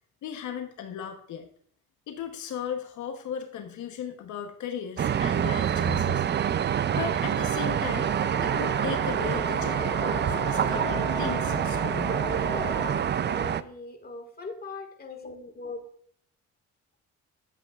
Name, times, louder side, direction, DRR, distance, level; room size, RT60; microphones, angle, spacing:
voice 1, 0.2-1.5 2.1-12.1, left 8 dB, 75° left, 5 dB, 1.0 m, -37 dB
sound 1, 5.0-13.6, right 9 dB, 35° right, 0.4 m, -26 dB
sound 2, 6.4-12.9, left 3 dB, 15° left, 0.7 m, -38 dB
voice 2, 12.5-15.8, left 3 dB, 30° left, 5 dB, 1.8 m, -40 dB
10.5 x 8.2 x 2.4 m, 0.63 s
cardioid pair, 90°, 30 cm